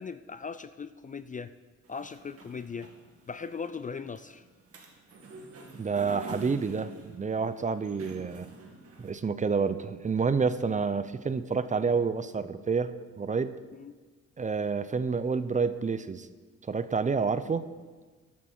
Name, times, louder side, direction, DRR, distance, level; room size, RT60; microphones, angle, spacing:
voice 1, 0.0-1.5 1.9-2.9 3.3-4.4 13.7-14.0, left 5 dB, 25° left, 12 dB, 0.4 m, -39 dB
sound 1, 1.8-9.1, right 2 dB, 50° right, 2.3 m, -48 dB
voice 2, 5.8-8.5 9.0-13.5 14.4-16.3 16.7-17.7, right 5 dB, 25° right, 13 dB, 0.6 m, -29 dB
13.5 x 10.5 x 4.4 m, 1.4 s
cardioid pair, 90°, 30 cm